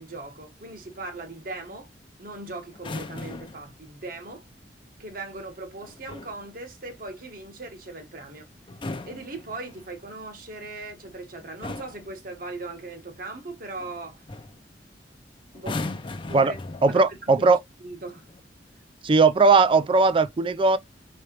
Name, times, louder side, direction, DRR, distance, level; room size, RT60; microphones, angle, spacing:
voice 1, 0.0-1.9 2.2-4.4 5.0-8.5 9.1-14.2 15.5-16.6 16.8-17.5 17.8-18.2, right 2 dB, 55° right, 1.3 m, -39 dB
sound 1, 2.7-3.7 5.8-6.4 8.6-10.0 11.0-11.2 11.6-12.1 13.8-14.0 14.3-14.6 15.5-17.2 18.1-18.4, left 2 dB, 30° left, 0.5 m, -37 dB
voice 2, 16.8-17.6 19.0-20.8, right 4 dB, 30° right, 0.4 m, -18 dB
4.8 x 3.2 x 2.9 m
head